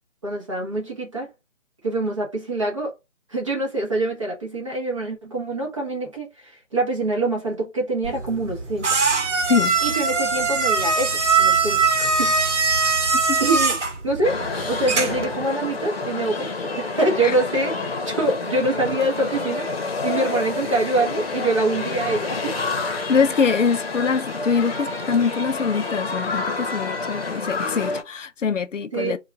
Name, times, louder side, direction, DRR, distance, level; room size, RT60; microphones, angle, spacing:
voice 1, 0.2-1.3 1.8-2.9 3.3-9.0 9.8-12.3 13.4-13.8 14.0-14.4 14.7-22.5 28.9-29.2, right 2 dB, 25° right, 0.9 m, -25 dB
sound 1, 8.0-15.3, right 4 dB, 65° right, 1.0 m, -21 dB
voice 2, 9.5-9.8 13.3-13.4 17.2-17.3 23.1-29.2, left 5 dB, 75° left, 0.6 m, -23 dB
sound 2, 14.2-28.0, left 3 dB, 50° left, 0.9 m, -28 dB
2.9 x 2.4 x 3.3 m
figure-of-eight pair, 165°, 38 cm